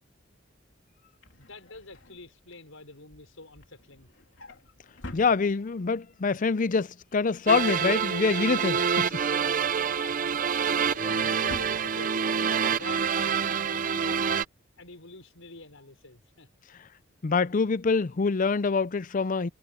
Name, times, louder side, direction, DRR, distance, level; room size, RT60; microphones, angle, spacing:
Drawer open or close, 0.9-6.0 6.4-6.7 6.9-9.2 9.6-12.6 12.9-13.1 13.4-13.5, left 1 dB, 65° left, 3.8 m, -49 dB
voice 1, 1.4-4.1 9.8-12.3 12.7-14.3 14.8-16.5, left 3 dB, 85° left, 6.0 m, -47 dB
voice 2, 5.1-9.3 17.2-19.5, left 4 dB, 40° left, 0.5 m, -25 dB
sound 1, 7.5-14.5, right 7 dB, 40° right, 0.5 m, -27 dB
head